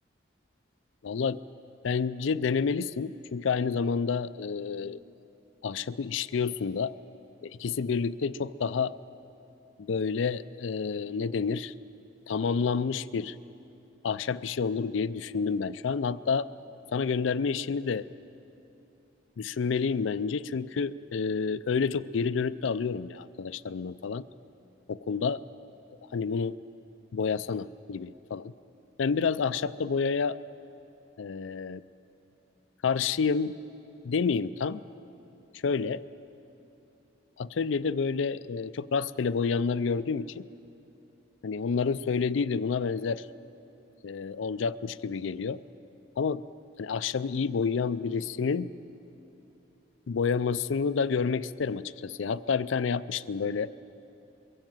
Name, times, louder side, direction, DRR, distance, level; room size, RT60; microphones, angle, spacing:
voice 1, 1.0-1.4 1.8-5.0 5.6-6.9 7.4-8.9 9.8-11.7 12.3-13.4 14.0-16.5 16.9-18.1 19.4-24.2 24.9-25.4 26.1-26.6 27.1-28.5 29.0-30.4 31.2-31.8 32.8-33.5 34.0-34.8 35.6-36.0 37.4-40.4 41.4-43.3 44.0-45.6 46.2-46.4 46.8-48.7 50.1-53.7, left 5 dB, 80° left, 14 dB, 0.4 m, -29 dB
22.0 x 16.0 x 7.8 m, 2.9 s
head